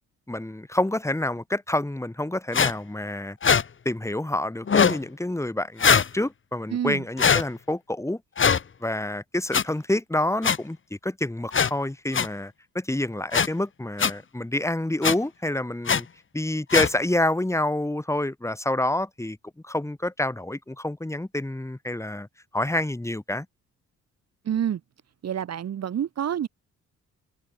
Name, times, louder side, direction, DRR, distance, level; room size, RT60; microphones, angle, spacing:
voice 1, 0.3-3.4 3.8-8.2 8.8-10.8 11.0-16.1 16.3-19.4 19.6-22.3 22.5-23.5, left 1 dB, 10° left, 7.5 m, -28 dB
sound 1, 2.5-2.7 3.4-3.6 4.7-5.0 5.8-6.1 7.2-7.4 8.4-8.6 9.5-9.6 10.4-10.6 11.5-11.7 12.1-12.3 13.3-13.5 14.0-14.1 15.0-15.2 15.9-16.0 16.7-16.9, left 6 dB, 40° left, 3.3 m, -20 dB
voice 2, 6.7-7.0 24.5-24.8 25.2-26.5, right 9 dB, 55° right, 2.3 m, -27 dB
cardioid pair, 90°, 30 cm